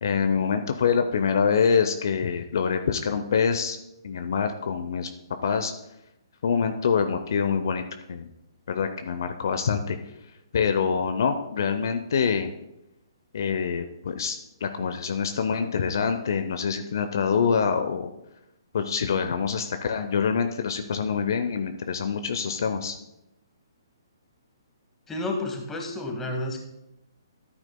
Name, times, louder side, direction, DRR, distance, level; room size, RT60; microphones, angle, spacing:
voice 1, 0.0-3.8 4.0-5.1 5.4-5.7 6.4-7.8 8.1-8.3 8.7-10.0 10.5-12.5 13.3-18.1 18.7-23.0, left 6 dB, 60° left, 8 dB, 0.6 m, -25 dB
voice 2, 25.1-26.6, left 2 dB, 10° left, 2 dB, 1.7 m, -30 dB
13.5 x 8.9 x 2.2 m, 0.88 s
figure-of-eight pair, 130°, 2 cm